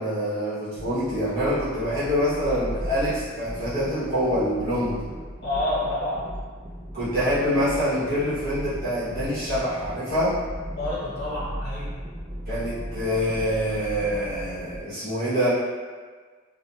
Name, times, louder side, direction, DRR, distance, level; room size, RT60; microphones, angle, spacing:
voice 1, 0.0-5.0 6.9-10.4 12.5-15.5, equal, 45° right, -11 dB, 1.0 m, -25 dB
sound 1, 0.7-14.8, equal, 30° right, 0.5 m, -36 dB
voice 2, 5.4-6.3 10.7-12.0, left 1 dB, 50° left, -8 dB, 0.8 m, -28 dB
2.8 x 2.2 x 2.3 m, 1.5 s
head